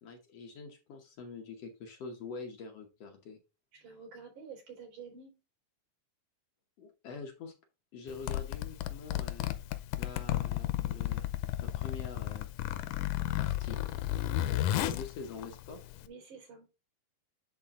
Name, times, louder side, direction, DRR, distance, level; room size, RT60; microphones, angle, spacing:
voice 1, 0.0-3.4 6.8-7.5 7.9-9.6 10.0-11.3 11.6-12.5 13.4-14.1 14.5-16.0, left 4 dB, 65° left, 3 dB, 1.8 m, -45 dB
voice 2, 3.7-5.3 16.0-16.8, right 5 dB, 85° right, -3 dB, 5.6 m, -49 dB
Zipper (clothing), 8.1-16.1, left 13 dB, 90° left, 2.2 m, -33 dB
10.5 x 3.9 x 3.6 m, 0.30 s
omnidirectional pair, 3.6 m